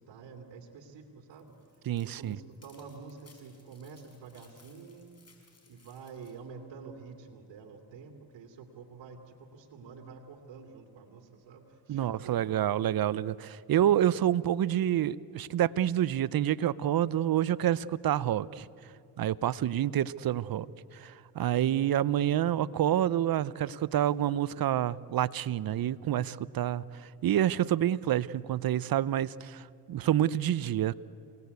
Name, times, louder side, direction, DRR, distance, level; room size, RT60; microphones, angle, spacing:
voice 1, 0.0-5.1 5.7-12.6, right 5 dB, 80° right, 4 dB, 2.6 m, -48 dB
sound 1, 1.3-6.4, left 4 dB, 35° left, 5.5 m, -63 dB
voice 2, 1.9-2.4 11.9-18.7 19.2-20.7 20.9-30.9, right 11 dB, 55° right, 19 dB, 0.7 m, -28 dB
27.5 x 19.0 x 8.2 m, 2.6 s
cardioid pair, 75°, 43 cm